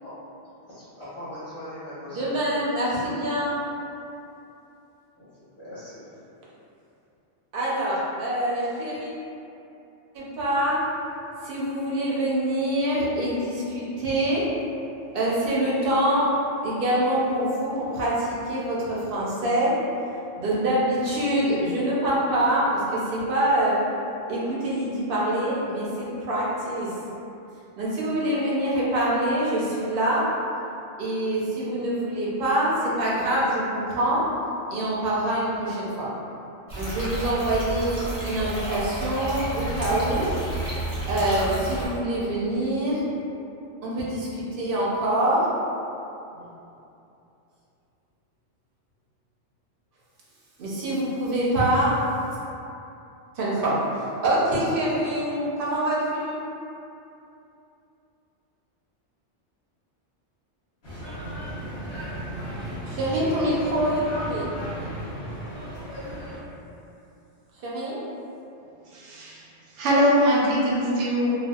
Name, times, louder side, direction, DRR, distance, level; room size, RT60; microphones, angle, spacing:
voice 1, 0.7-2.4 5.2-5.3 5.6-6.1, left 1 dB, 15° left, -14 dB, 0.8 m, -40 dB
voice 2, 2.1-3.7 7.5-9.1 10.1-10.8 11.4-14.5 15.1-16.3 16.6-19.7 20.4-23.8 24.3-27.0 27.8-30.3 31.0-34.2 34.7-36.1 36.7-40.3 41.1-43.0 43.8-45.5 46.3-46.4 50.6-52.0 53.3-56.4 62.8-64.4 67.5-68.0, right 1 dB, 60° right, -7 dB, 0.7 m, -25 dB
sound 1, 36.7-41.9, right 1 dB, 25° right, 0.6 m, -31 dB
sound 2, 60.8-66.4, right 1 dB, 65° left, 1.0 m, -34 dB
voice 3, 68.9-69.4 69.8-71.3, equal, 90° right, -5 dB, 0.9 m, -22 dB
2.6 x 2.2 x 2.3 m, 2.8 s
omnidirectional pair, 1.2 m